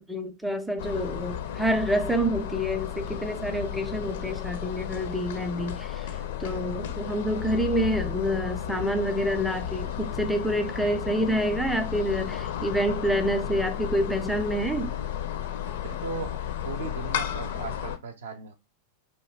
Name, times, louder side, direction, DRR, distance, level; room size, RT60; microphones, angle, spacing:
voice 1, 0.0-6.1 6.4-14.9, equal, ahead, 0.5 m, -27 dB
sound 1, 0.8-18.0, left 10 dB, 55° left, 0.4 m, -33 dB
voice 2, 15.8-18.5, right 4 dB, 65° right, 0.5 m, -37 dB
2.9 x 2.3 x 3.3 m
figure-of-eight pair, 90°, 0 cm